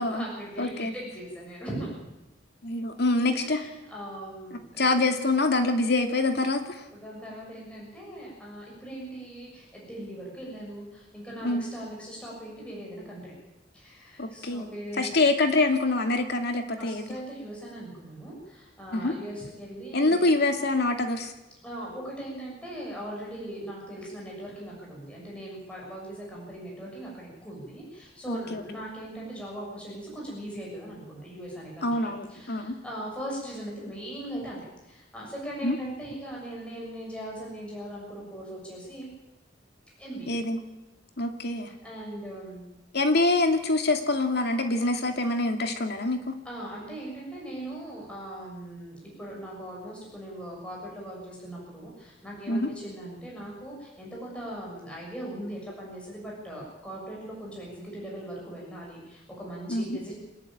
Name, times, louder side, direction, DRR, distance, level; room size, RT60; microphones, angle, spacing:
voice 1, 0.0-1.9 3.3-4.9 6.9-13.3 13.7-15.1 16.8-20.3 21.6-39.1 40.0-40.4 41.8-42.7 46.5-60.1, right 1 dB, 5° left, -4 dB, 6.9 m, -40 dB
voice 2, 0.6-0.9 2.6-3.6 4.8-6.8 11.4-11.6 14.2-14.7 15.0-17.0 18.9-19.1 19.9-21.3 28.3-28.6 31.8-32.8 35.6-35.8 40.3-40.6 41.2-41.7 42.9-46.3 52.5-52.7 59.7-60.0, left 2 dB, 60° left, 5 dB, 2.4 m, -25 dB
26.5 x 11.0 x 9.0 m, 0.99 s
head